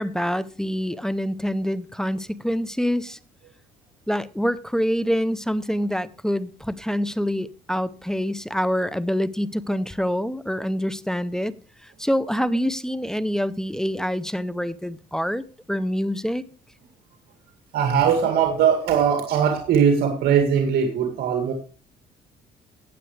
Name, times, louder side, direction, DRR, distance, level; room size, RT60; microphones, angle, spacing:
voice 1, 0.0-3.2 4.1-11.5 11.8-15.4 15.7-16.4, equal, 5° left, 14 dB, 0.6 m, -26 dB
voice 2, 17.7-21.5, right 7 dB, 70° right, 4 dB, 2.1 m, -20 dB
15.5 x 9.1 x 3.3 m, 0.36 s
cardioid pair, 110°, 17 cm